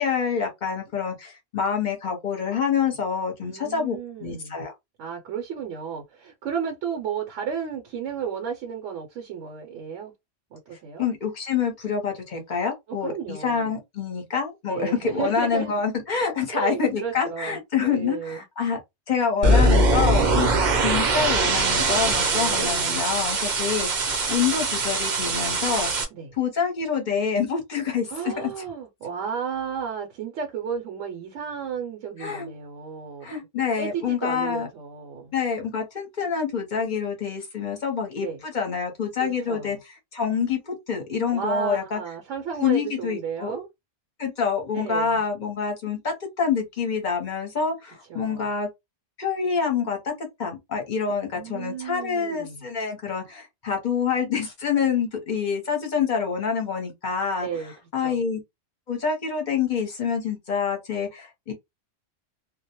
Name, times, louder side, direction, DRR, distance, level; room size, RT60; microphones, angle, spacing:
voice 1, 0.0-4.7 11.0-18.8 19.1-25.9 26.3-28.5 32.2-32.5 33.2-34.7 35.3-42.0 42.6-43.6 44.2-48.7 49.2-50.1 50.4-57.5 57.9-58.4 58.9-61.5, left 6 dB, 45° left, 0.7 m, -27 dB
voice 2, 3.4-4.5 5.0-10.1 10.5-11.0 12.9-13.7 14.7-15.7 16.5-18.4 22.3-22.7 26.1-26.3 28.1-33.3 33.8-35.3 38.2-38.4 39.2-39.8 41.3-43.7 44.7-45.2 48.1-48.5 51.1-52.7 57.4-57.7 58.0-58.2, right 7 dB, 75° right, 0.9 m, -33 dB
sound 1, 19.4-26.0, right 2 dB, 45° right, 0.6 m, -22 dB
2.2 x 2.0 x 2.8 m
omnidirectional pair, 1.3 m